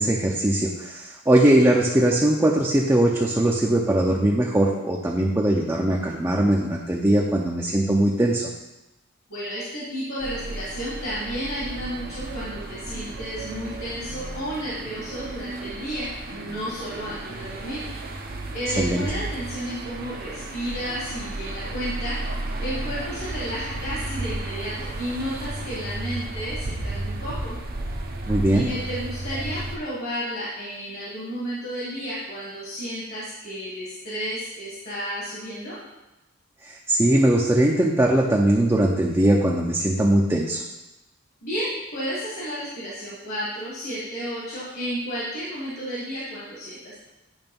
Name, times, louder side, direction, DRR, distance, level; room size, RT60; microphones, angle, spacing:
voice 1, 0.0-8.5 18.8-19.0 28.3-28.7 36.6-40.6, right 1 dB, 15° right, -2 dB, 0.6 m, -20 dB
voice 2, 9.3-17.8 18.5-22.2 22.6-27.6 28.5-35.8 41.4-47.0, equal, 50° left, -7 dB, 1.6 m, -32 dB
sound 1, 10.2-29.8, right 2 dB, 45° right, 0.7 m, -33 dB
8.9 x 3.3 x 5.3 m, 1.0 s
head